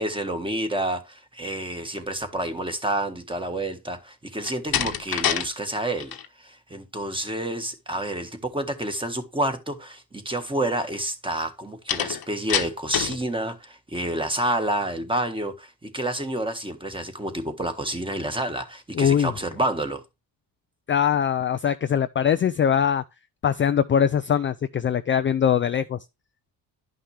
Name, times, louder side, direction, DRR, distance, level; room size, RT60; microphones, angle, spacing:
voice 1, 0.0-20.0, right 1 dB, 10° right, 1.5 m, -29 dB
Slam, 4.4-5.5 5.8-6.3 11.9-13.2, left 9 dB, 60° left, 1.1 m, -26 dB
voice 2, 18.9-19.3 20.9-23.0 23.4-26.0, left 8 dB, 30° left, 0.4 m, -22 dB
11.0 x 5.7 x 3.3 m
cardioid pair, 95°, 41 cm